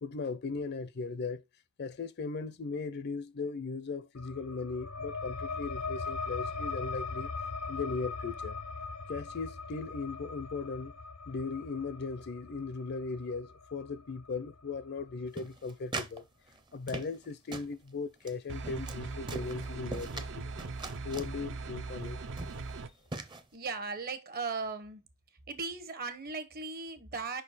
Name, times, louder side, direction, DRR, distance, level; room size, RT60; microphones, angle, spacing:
voice 1, 0.0-1.4 1.8-7.3 7.7-8.6 9.1-10.9 11.3-16.2 16.7-20.4 21.0-22.3, left 4 dB, 50° left, 0.5 m, -38 dB
sound 1, 4.1-15.3, left 4 dB, 85° left, 0.7 m, -40 dB
sound 2, 15.4-16.2 16.5-17.3 17.5-17.7 18.2-18.3 18.6-19.0 19.3-20.3 20.6-21.3 22.0-22.1 22.4-22.7 23.1-23.4, right 3 dB, 20° right, 0.6 m, -40 dB
sound 3, 18.5-22.9, right 3 dB, 60° right, 0.6 m, -40 dB
voice 2, 23.5-25.0 25.5-27.4, right 4 dB, 45° right, 1.0 m, -37 dB
5.3 x 4.4 x 4.1 m
head